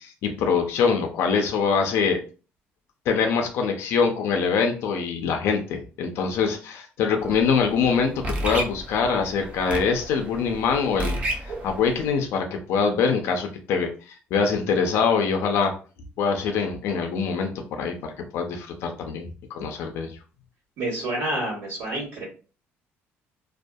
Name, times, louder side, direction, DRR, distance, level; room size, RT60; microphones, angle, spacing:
voice 1, 0.0-2.2 3.1-15.7 16.2-19.3 19.5-20.1, left 5 dB, 65° left, 4 dB, 0.5 m, -24 dB
sound 1, 7.2-12.1, right 1 dB, 25° right, 0.5 m, -32 dB
voice 2, 20.8-22.3, right 1 dB, 65° right, -9 dB, 1.4 m, -28 dB
2.6 x 2.3 x 2.2 m, 0.36 s
cardioid pair, 165°, 5 cm